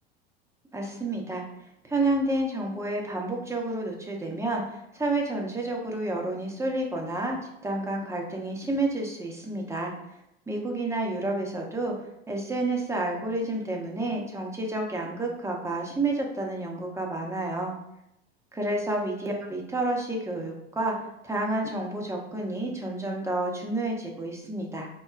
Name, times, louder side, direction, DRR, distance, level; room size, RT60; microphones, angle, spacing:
voice 1, 0.7-1.4 1.8-9.9 10.5-11.9 12.3-17.7 18.5-21.0 21.2-24.9, right 2 dB, 10° right, 0 dB, 0.8 m, -30 dB
4.5 x 2.2 x 2.4 m, 0.83 s
hypercardioid pair, 85°, 32 cm